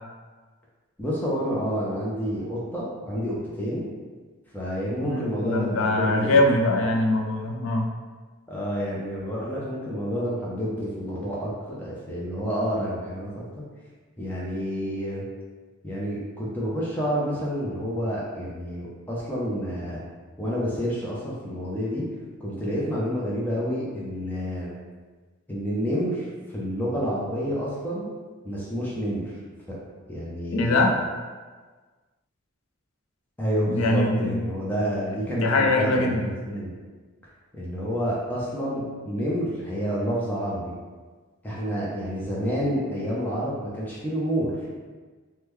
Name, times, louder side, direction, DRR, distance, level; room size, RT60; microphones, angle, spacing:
voice 1, 1.0-3.8 4.5-6.4 6.8-6.9 8.5-13.4 14.2-15.2 15.8-20.0 20.4-22.0 22.4-24.7 25.5-28.1 28.4-29.3 30.1-30.8 33.4-36.7 37.5-40.7 41.4-44.6, equal, 10° left, -6 dB, 0.5 m, -29 dB
voice 2, 5.0-7.9 30.5-31.0 33.7-34.4 35.4-36.3, left 2 dB, 70° left, 2 dB, 0.4 m, -22 dB
3.5 x 2.2 x 3.0 m, 1.4 s
head